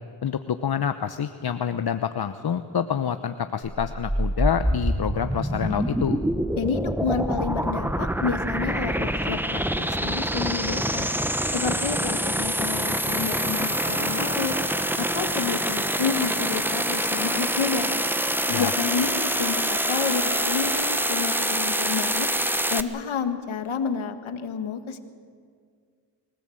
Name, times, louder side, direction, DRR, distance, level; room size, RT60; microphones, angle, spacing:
voice 1, 0.2-6.2 18.5-18.7, left 8 dB, 55° left, 10 dB, 0.9 m, -27 dB
sound 1, 3.6-22.8, right 1 dB, 5° right, 1.1 m, -26 dB
voice 2, 6.6-11.1 11.5-14.5 15.0-17.9 18.5-22.3 22.7-25.0, left 6 dB, 85° left, 8 dB, 1.6 m, -30 dB
23.5 x 17.5 x 7.8 m, 2.1 s
cardioid pair, 55°, 47 cm